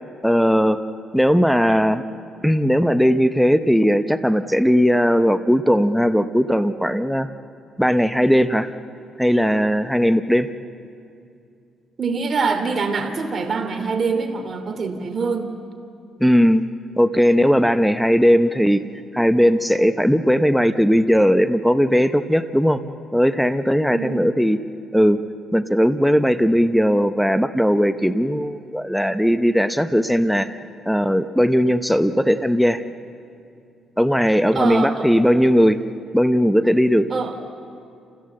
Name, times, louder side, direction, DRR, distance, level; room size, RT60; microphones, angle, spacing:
voice 1, 0.2-0.8 1.1-2.0 2.4-7.3 7.8-8.7 9.2-10.5 16.2-16.6 17.0-18.8 19.1-22.8 23.1-24.6 24.9-25.2 25.5-32.8 34.0-35.8 36.1-37.1, equal, ahead, 11 dB, 0.7 m, -18 dB
voice 2, 12.0-15.5 23.9-24.2 34.5-35.1 37.1-37.4, right 4 dB, 40° right, 5 dB, 2.7 m, -24 dB
29.0 x 15.5 x 7.6 m, 2.4 s
cardioid pair, 90°, 0 cm